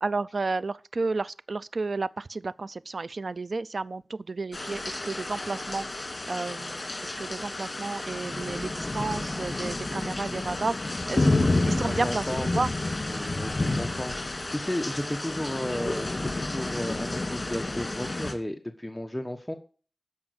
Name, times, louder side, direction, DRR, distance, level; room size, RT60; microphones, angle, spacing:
voice 1, 0.0-11.4 11.7-12.7, right 3 dB, 75° right, 0.5 m, -32 dB
sound 1, 4.5-18.3, left 2 dB, 45° left, 2.5 m, -30 dB
voice 2, 11.9-12.5 13.1-19.5, left 1 dB, 10° left, 1.2 m, -34 dB
13.0 x 5.2 x 7.9 m
wide cardioid pair, 55°, 0 cm